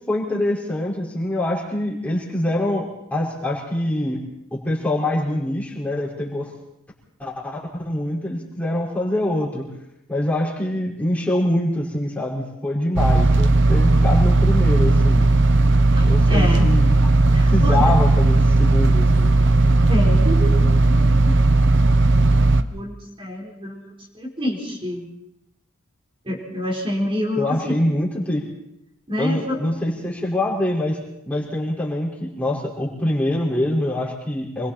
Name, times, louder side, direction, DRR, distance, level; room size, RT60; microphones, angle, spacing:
voice 1, 0.1-4.2 4.5-6.5 7.2-9.6 10.1-15.3 16.0-17.0 17.5-19.4 27.3-28.5 29.2-31.0 31.2-34.7, left 1 dB, 5° left, -5 dB, 5.1 m, -24 dB
sound 1, 13.0-22.6, right 2 dB, 60° right, 1.0 m, -16 dB
voice 2, 15.9-16.7 17.3-17.8 19.9-21.4 22.4-22.9 23.2-25.1 26.2-27.8 29.1-29.6, left 1 dB, 25° right, -3 dB, 4.3 m, -28 dB
26.5 x 23.0 x 4.4 m, 0.80 s
head